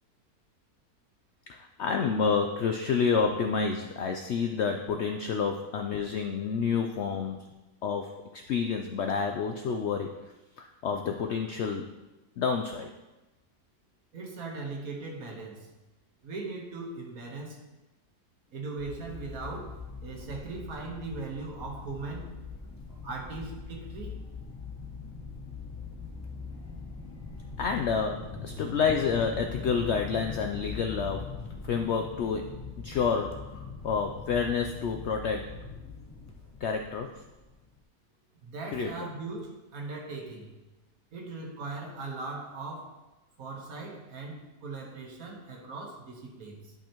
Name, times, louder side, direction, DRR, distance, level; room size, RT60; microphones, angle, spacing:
voice 1, 1.5-7.4 7.8-10.1 10.6-11.9 12.4-12.9 27.6-31.3 31.6-35.5 36.6-37.1 38.7-39.1, left 5 dB, 70° left, 5 dB, 0.6 m, -29 dB
voice 2, 14.1-15.7 16.2-17.6 18.5-22.3 23.0-24.2 38.4-40.5 41.1-43.0 43.4-46.7, right 3 dB, 65° right, 0 dB, 1.6 m, -39 dB
sound 1, 18.8-37.8, left 4 dB, 15° left, 0.6 m, -41 dB
11.0 x 5.5 x 2.9 m, 1.1 s
omnidirectional pair, 1.6 m